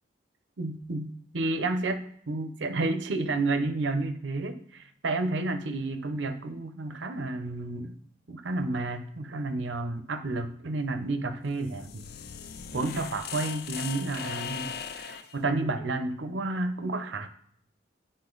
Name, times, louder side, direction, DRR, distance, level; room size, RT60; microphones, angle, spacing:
voice 1, 0.6-8.0 8.3-12.1 12.7-17.3, right 2 dB, 75° right, 9 dB, 0.7 m, -31 dB
sound 1, 11.5-15.4, left 7 dB, 55° left, 0.5 m, -38 dB
9.8 x 3.8 x 3.9 m, 0.66 s
head